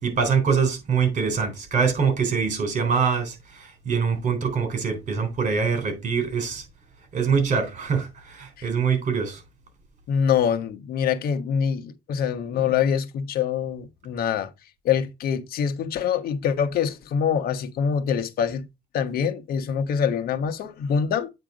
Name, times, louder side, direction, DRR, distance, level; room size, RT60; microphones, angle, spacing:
voice 1, 0.0-6.6 7.1-9.4, right 6 dB, 45° right, 3.6 m, -24 dB
voice 2, 10.1-14.5 14.8-18.6 18.9-21.3, left 7 dB, 65° left, 1.2 m, -25 dB
8.8 x 3.4 x 5.1 m
cardioid pair, 110°, 17 cm